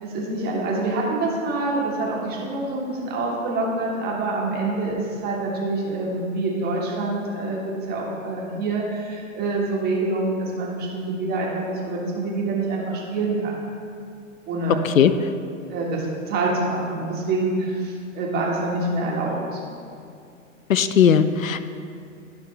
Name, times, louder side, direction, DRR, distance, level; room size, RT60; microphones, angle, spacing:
voice 1, 0.0-13.6 14.5-14.9 15.7-19.6, right 2 dB, 25° right, -2 dB, 1.5 m, -26 dB
voice 2, 20.7-21.6, left 8 dB, 90° left, 12 dB, 0.5 m, -17 dB
10.5 x 5.7 x 3.3 m, 2.4 s
figure-of-eight pair, 115°, 39 cm